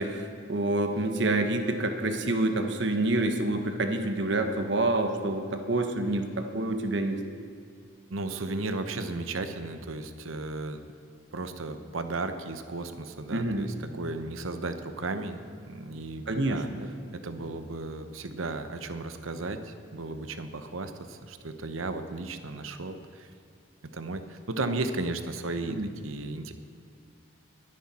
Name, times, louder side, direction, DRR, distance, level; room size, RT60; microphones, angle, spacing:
voice 1, 0.0-7.2 13.3-13.6 16.3-16.9 25.7-25.9, right 2 dB, 60° right, 6 dB, 1.2 m, -27 dB
voice 2, 8.1-10.8 11.3-16.7 17.1-23.3 23.9-25.8 26.0-26.5, right 2 dB, 85° right, 9 dB, 0.9 m, -35 dB
22.0 x 10.0 x 4.3 m, 2.4 s
head